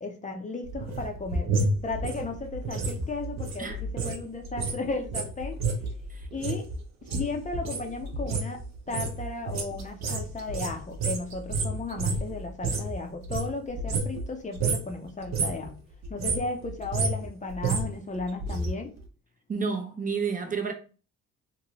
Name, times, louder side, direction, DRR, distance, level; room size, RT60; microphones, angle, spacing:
voice 1, 0.0-1.5 1.8-5.6 6.3-6.6 7.1-15.8 16.1-18.9, left 3 dB, 25° left, 0.5 m, -35 dB
sound 1, 0.6-4.2 4.4-12.9 13.2-14.3 14.5-14.9 15.2-15.7 16.0-18.7 19.0-19.1, right 3 dB, 60° right, 0.8 m, -30 dB
voice 2, 19.5-20.7, right 5 dB, 25° right, 0.5 m, -30 dB
2.7 x 2.6 x 2.9 m
cardioid pair, 90°, 30 cm